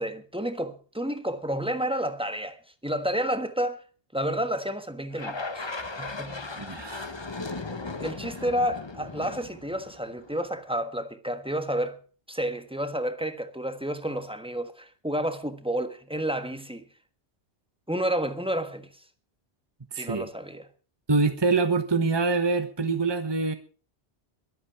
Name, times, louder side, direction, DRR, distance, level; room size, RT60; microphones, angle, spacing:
voice 1, 0.0-2.6 2.8-3.8 4.1-5.7 6.0-6.5 8.0-12.0 12.3-16.8 17.9-18.9 20.0-20.7, right 1 dB, 5° right, 1.3 m, -30 dB
sound 1, 5.1-10.5, left 3 dB, 25° left, 1.1 m, -37 dB
voice 2, 6.6-7.1 19.9-20.3 21.1-23.5, right 4 dB, 25° right, 1.3 m, -25 dB
22.5 x 8.7 x 4.9 m
omnidirectional pair, 1.1 m